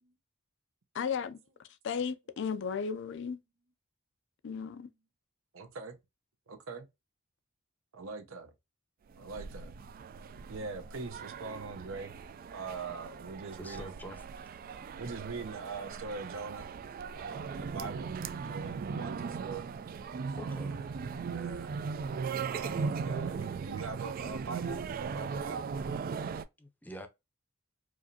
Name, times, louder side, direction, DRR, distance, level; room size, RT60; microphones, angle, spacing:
voice 1, 0.9-1.4 1.8-3.4 4.4-4.9, left 6 dB, 60° left, 0.4 m, -34 dB
voice 2, 5.5-6.0 6.5-6.9 7.9-8.5 9.2-9.8 10.5-12.2 12.5-14.1 15.0-16.7 17.2-19.7 20.4-20.7 21.3-21.7 22.5-25.6, right 4 dB, 75° right, 0.8 m, -42 dB
sound 1, 9.1-26.4, right 5 dB, 45° right, 0.3 m, -38 dB
voice 3, 13.6-14.2 20.3-20.7 26.6-27.1, equal, 10° left, 0.6 m, -45 dB
4.8 x 2.5 x 2.7 m
head